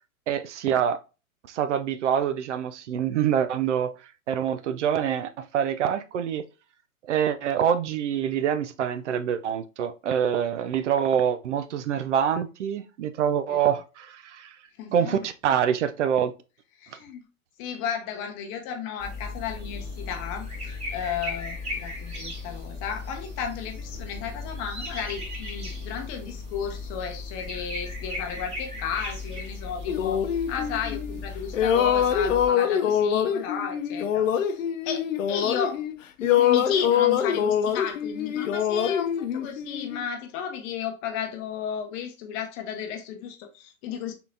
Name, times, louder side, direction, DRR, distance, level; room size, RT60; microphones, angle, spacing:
voice 1, 0.3-1.0 1.5-3.9 4.3-6.4 7.1-14.5 14.9-16.3, right 8 dB, 55° right, 0.5 m, -25 dB
voice 2, 14.8-15.3 16.8-17.2 17.6-30.2 30.5-35.8 36.2-44.1, left 7 dB, 30° left, 0.8 m, -34 dB
sound 1, 19.0-32.5, left 3 dB, 15° right, 1.6 m, -36 dB
sound 2, 29.9-31.2 31.5-35.9 36.2-40.0, left 9 dB, 65° left, 0.6 m, -24 dB
4.0 x 3.8 x 2.6 m
figure-of-eight pair, 110°, 42 cm